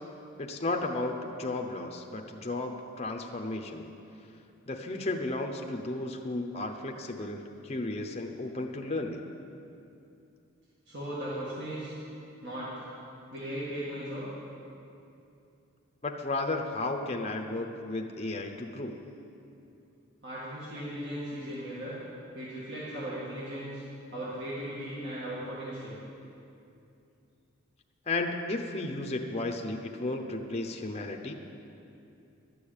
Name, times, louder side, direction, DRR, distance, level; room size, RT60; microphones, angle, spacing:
voice 1, 0.4-3.9 4.7-9.2 16.0-19.0 28.1-31.3, left 2 dB, 30° left, 3 dB, 0.7 m, -34 dB
voice 2, 10.9-12.0 12.4-12.9 13.3-14.3 20.2-22.0 22.3-23.8 24.1-26.0, right 1 dB, 50° right, -8 dB, 2.1 m, -37 dB
12.5 x 6.7 x 8.8 m, 2.7 s
head